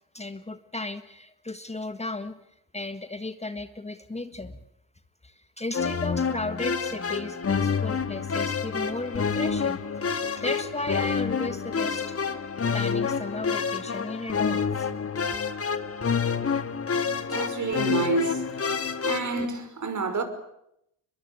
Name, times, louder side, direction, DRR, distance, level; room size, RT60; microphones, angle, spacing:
voice 1, 0.1-2.3 2.7-4.6 5.2-9.8 10.1-12.2 12.7-15.1, left 2 dB, 15° left, 1.6 m, -35 dB
sound 1, 5.7-19.5, left 6 dB, 30° left, 2.0 m, -28 dB
voice 2, 17.3-18.4 19.0-20.2, right 4 dB, 40° right, 5.5 m, -28 dB
23.0 x 22.0 x 9.6 m
supercardioid pair, 75°, 43 cm